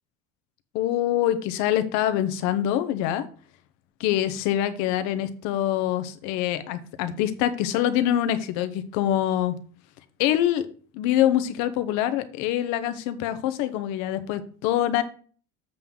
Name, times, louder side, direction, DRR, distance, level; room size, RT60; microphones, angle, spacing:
voice 1, 0.7-3.3 4.0-9.6 10.2-10.7 10.9-15.0, left 12 dB, 75° left, 12 dB, 0.9 m, -25 dB
7.6 x 3.7 x 6.2 m, 0.42 s
cardioid pair, 165°, 29 cm